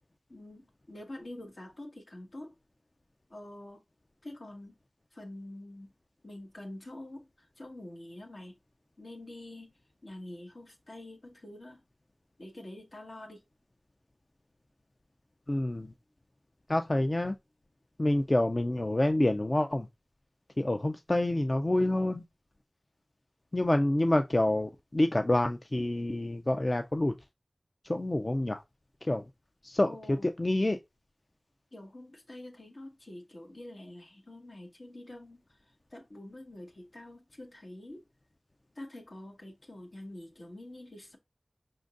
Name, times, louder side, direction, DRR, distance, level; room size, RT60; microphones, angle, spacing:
voice 1, 0.3-2.6 3.3-3.8 4.2-4.8 5.1-5.9 6.2-8.5 9.0-9.7 10.0-11.8 12.4-13.4 29.8-30.3 31.7-35.6 35.9-38.0 38.7-41.2, left 1 dB, 70° left, 1.5 m, -46 dB
voice 2, 15.5-15.9 16.7-17.4 18.0-19.9 20.6-22.2 23.5-27.1 27.8-28.6 29.0-29.2 29.6-29.9 30.2-30.8, left 1 dB, 40° left, 0.4 m, -27 dB
5.2 x 3.8 x 2.5 m
wide cardioid pair, 55°, 0 cm